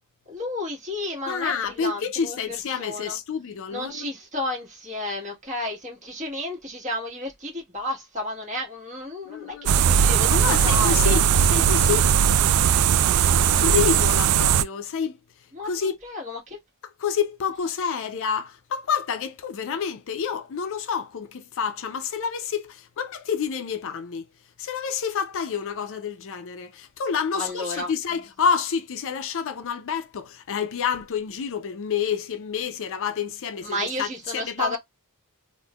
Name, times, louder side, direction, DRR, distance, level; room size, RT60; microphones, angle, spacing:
voice 1, 0.3-3.2 3.7-11.2 15.5-15.7 16.0-16.6 27.3-27.9 33.6-34.8, left 1 dB, 35° right, 1.5 m, -32 dB
voice 2, 1.3-4.1 9.2-10.0 10.3-12.1 13.5-15.2 15.6-16.0 16.8-24.3 24.6-34.8, left 6 dB, 60° left, 0.5 m, -28 dB
sound 1, 9.7-14.6, right 8 dB, 75° right, 0.4 m, -19 dB
3.6 x 2.5 x 2.2 m
head